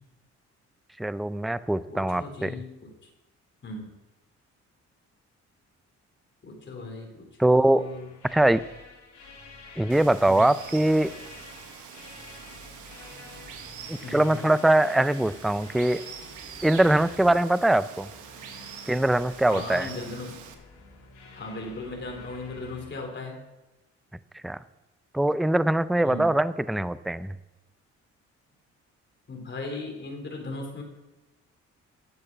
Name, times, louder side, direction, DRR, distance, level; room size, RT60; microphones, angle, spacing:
voice 1, 1.0-2.5 7.4-7.8 8.3-8.6 9.8-11.1 13.9-16.0 16.6-18.1 18.9-19.9 24.4-24.6 25.1-27.3, right 1 dB, ahead, 15 dB, 0.3 m, -22 dB
voice 2, 1.9-2.9 3.6-3.9 6.4-8.1 10.3-10.5 14.0-14.5 19.4-20.3 21.3-23.4 26.0-26.3 29.3-30.8, left 2 dB, 40° left, 1 dB, 3.4 m, -37 dB
sound 1, 7.8-22.9, left 4 dB, 80° left, 3.2 m, -49 dB
Water, 9.9-20.5, right 8 dB, 90° right, 1.2 m, -44 dB
11.0 x 8.1 x 5.8 m, 1.0 s
cardioid pair, 90°, 30 cm